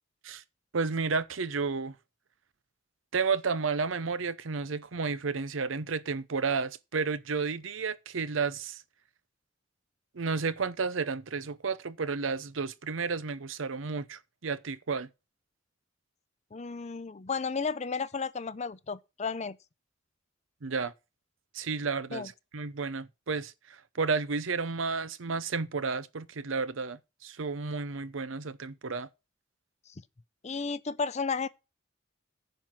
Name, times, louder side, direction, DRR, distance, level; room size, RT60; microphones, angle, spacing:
voice 1, 0.7-1.9 3.1-8.8 10.1-15.1 20.6-20.9 21.5-29.1, right 4 dB, 90° right, 0.7 m, -32 dB
voice 2, 16.5-19.6 22.1-22.3 30.4-31.5, left 5 dB, 35° left, 0.5 m, -33 dB
10.5 x 4.5 x 7.5 m
head